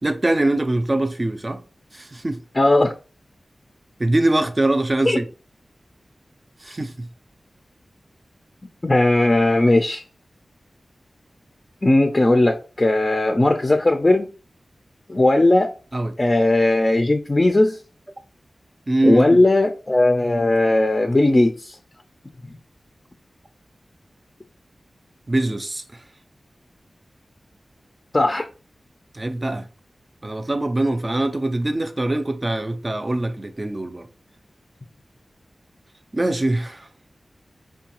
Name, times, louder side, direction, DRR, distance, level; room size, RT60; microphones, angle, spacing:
voice 1, 0.0-1.6 1.9-2.4 4.0-5.3 6.6-7.1 15.9-16.2 18.9-19.4 25.3-26.0 29.1-29.7 30.2-34.1 36.1-36.9, right 2 dB, 35° right, 0.4 m, -23 dB
voice 2, 2.6-2.9 5.1-5.2 8.8-10.0 11.8-14.3 15.1-15.7 16.2-17.8 19.0-21.7 28.1-28.5, left 2 dB, 30° left, 0.4 m, -17 dB
4.5 x 2.2 x 2.9 m
wide cardioid pair, 65°, 0 cm